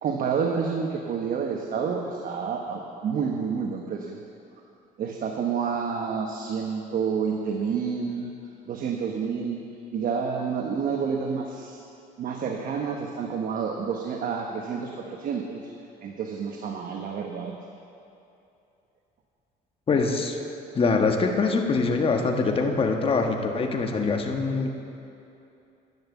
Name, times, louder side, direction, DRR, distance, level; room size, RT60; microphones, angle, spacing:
voice 1, 0.0-4.2 5.0-8.3 8.7-9.6 9.9-11.8 12.2-15.6 16.0-17.6, right 6 dB, 55° right, 2 dB, 1.1 m, -29 dB
voice 2, 19.9-20.4 20.7-24.7, left 4 dB, 35° left, 3 dB, 1.4 m, -24 dB
11.0 x 10.5 x 7.1 m, 2.7 s
cardioid pair, 110°, 17 cm